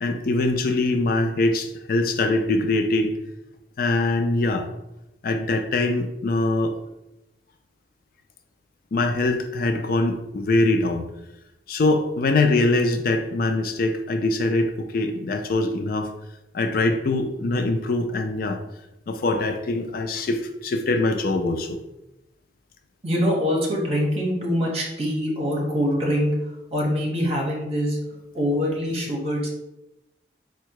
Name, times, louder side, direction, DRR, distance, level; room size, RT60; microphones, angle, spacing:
voice 1, 0.0-3.1 3.8-4.7 5.2-6.8 8.9-11.1 11.7-16.1 16.5-18.6 19.1-21.8, left 2 dB, 50° left, 7 dB, 0.4 m, -23 dB
voice 2, 23.0-26.3 26.7-28.0 28.3-29.5, equal, 35° right, -2 dB, 1.1 m, -24 dB
4.1 x 2.3 x 4.6 m, 0.89 s
head